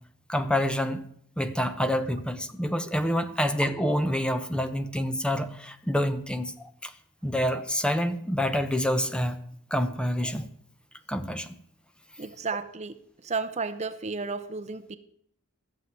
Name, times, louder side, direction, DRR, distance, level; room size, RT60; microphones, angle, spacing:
voice 1, 0.3-1.0 1.4-6.9 7.2-9.4 9.7-10.5 11.1-11.5, equal, 5° left, 10 dB, 0.8 m, -27 dB
voice 2, 12.2-12.9 13.2-15.0, right 4 dB, 30° right, 11 dB, 0.7 m, -32 dB
14.5 x 7.5 x 9.4 m, 0.67 s
head